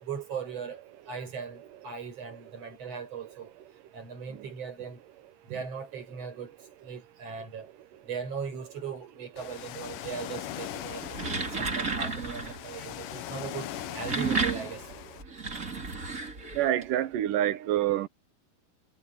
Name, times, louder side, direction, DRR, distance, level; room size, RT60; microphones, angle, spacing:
voice 1, 0.0-0.8 1.1-3.5 3.9-5.0 5.5-6.6 6.8-7.7 8.0-15.0, right 6 dB, 45° right, 6.5 m, -39 dB
Ocean, 9.4-15.2, left 13 dB, 75° left, 2.5 m, -40 dB
sound 1, 10.9-12.6 13.7-16.8, right 4 dB, 25° right, 3.4 m, -32 dB
voice 2, 16.6-18.1, right 12 dB, 75° right, 2.5 m, -26 dB
omnidirectional pair, 4.1 m